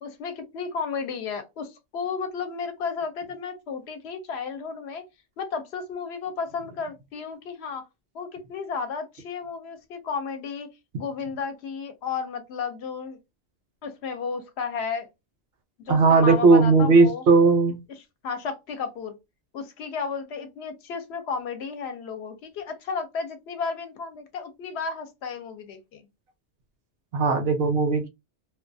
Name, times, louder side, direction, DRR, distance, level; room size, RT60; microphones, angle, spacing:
voice 1, 0.0-5.0 5.4-7.9 8.1-10.7 11.0-13.2 13.8-15.1 15.9-17.2 18.2-19.1 19.5-26.0, left 5 dB, 70° left, 0.8 m, -33 dB
voice 2, 15.9-17.8 27.1-28.1, right 4 dB, 65° right, 0.8 m, -18 dB
2.3 x 2.2 x 2.5 m
omnidirectional pair, 1.2 m